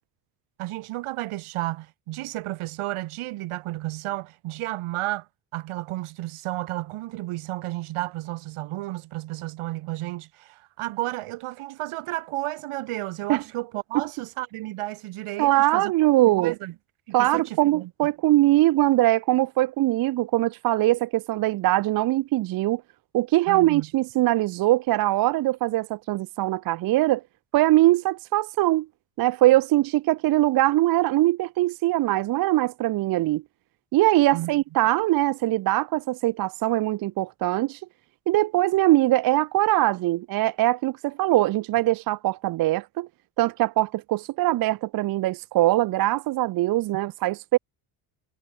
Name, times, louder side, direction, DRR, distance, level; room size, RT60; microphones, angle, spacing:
voice 1, 0.6-5.3 5.5-15.9 16.3-16.7 17.1-18.1 23.5-23.9 34.3-34.5, right 17 dB, 80° right, 4.1 m, -32 dB
voice 2, 15.4-16.5 17.1-22.8 23.1-27.2 27.5-28.9 29.2-33.4 33.9-37.8 38.3-43.1 43.4-47.6, right 17 dB, 50° right, 0.4 m, -22 dB
cardioid pair, 165°, 50 cm